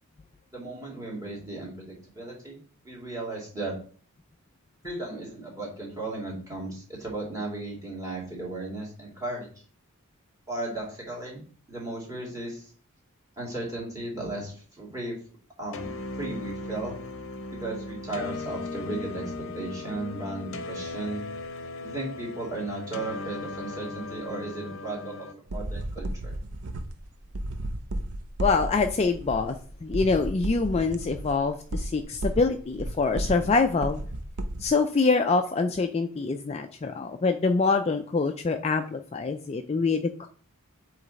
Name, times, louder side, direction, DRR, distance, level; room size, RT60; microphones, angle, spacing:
voice 1, 0.5-3.7 4.8-9.5 10.5-12.7 13.4-15.2 15.6-15.9 16.2-17.0 17.5-21.2 21.8-26.3, right 2 dB, 15° right, -4 dB, 2.4 m, -35 dB
sound 1, 15.7-25.3, left 2 dB, 60° left, 0.7 m, -37 dB
sound 2, 25.5-34.7, right 1 dB, 80° right, 0.7 m, -34 dB
voice 2, 28.4-29.6 29.8-34.0 34.6-40.3, left 4 dB, 30° left, 6 dB, 0.3 m, -25 dB
7.7 x 3.2 x 4.0 m, 0.42 s
head